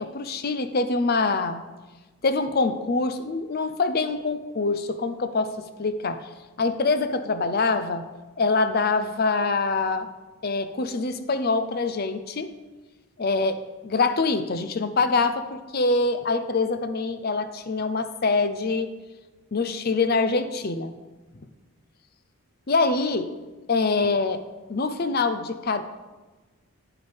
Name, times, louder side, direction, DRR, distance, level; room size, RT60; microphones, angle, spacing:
voice 1, 0.0-1.6 2.2-6.2 6.6-8.1 8.4-10.1 10.4-12.5 13.2-18.9 19.5-20.9 22.7-23.3 23.7-24.4 24.7-25.8, left 3 dB, 45° left, 10 dB, 0.5 m, -24 dB
9.7 x 9.4 x 3.5 m, 1.2 s
head